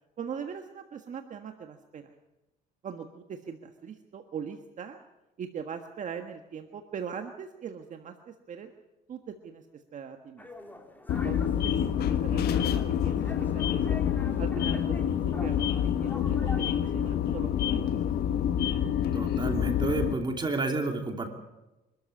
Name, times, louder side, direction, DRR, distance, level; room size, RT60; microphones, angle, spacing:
voice 1, 0.2-2.1 2.8-5.0 5.4-8.7 9.1-10.5 11.2-14.1 14.4-15.8 16.0-18.0, right 7 dB, 45° right, 6 dB, 1.6 m, -41 dB
sound 1, 10.4-17.4, left 1 dB, 10° left, 3.0 m, -45 dB
sound 2, 11.1-20.1, left 9 dB, 70° left, 1.5 m, -27 dB
voice 2, 19.1-21.3, right 3 dB, 25° right, 4 dB, 3.0 m, -30 dB
25.0 x 13.5 x 8.5 m, 1.0 s
cardioid pair, 110°, 17 cm